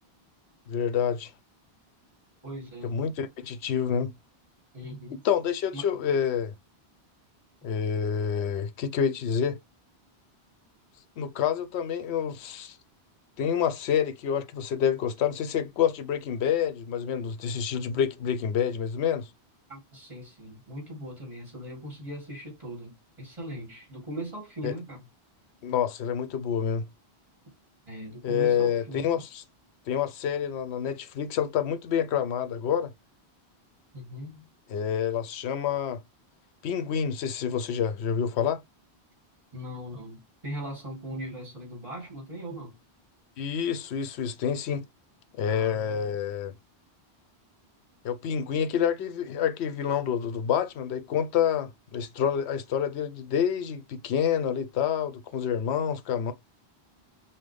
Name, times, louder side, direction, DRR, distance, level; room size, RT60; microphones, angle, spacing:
voice 1, 0.7-1.3 2.8-4.1 5.2-6.5 7.6-9.6 11.2-12.8 13.4-19.3 24.6-24.7 25.6-26.8 28.2-29.4 29.9-32.9 34.7-36.0 36.6-38.6 43.4-44.9 45.4-46.5 48.0-56.3, left 8 dB, 85° left, 0.9 m, -28 dB
voice 2, 2.4-2.9 4.7-5.2 5.7-5.8 19.7-25.1 27.9-29.1 33.9-34.4 39.5-42.7 45.5-46.1, right 1 dB, 30° right, 2.4 m, -39 dB
5.7 x 2.1 x 3.2 m
omnidirectional pair, 1.1 m